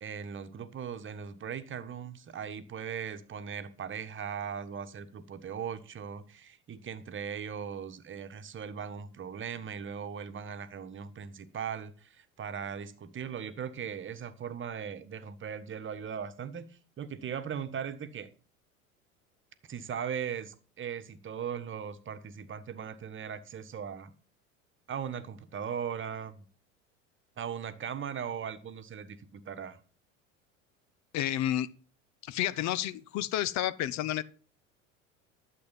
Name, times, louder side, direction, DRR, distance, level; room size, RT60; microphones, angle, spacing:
voice 1, 0.0-18.3 19.7-24.1 24.9-26.5 27.4-29.8, right 7 dB, 30° right, 1.4 m, -39 dB
voice 2, 31.1-31.7 32.2-34.2, left 12 dB, 45° left, 0.8 m, -30 dB
12.0 x 7.8 x 5.7 m
hypercardioid pair, 75°, 39 cm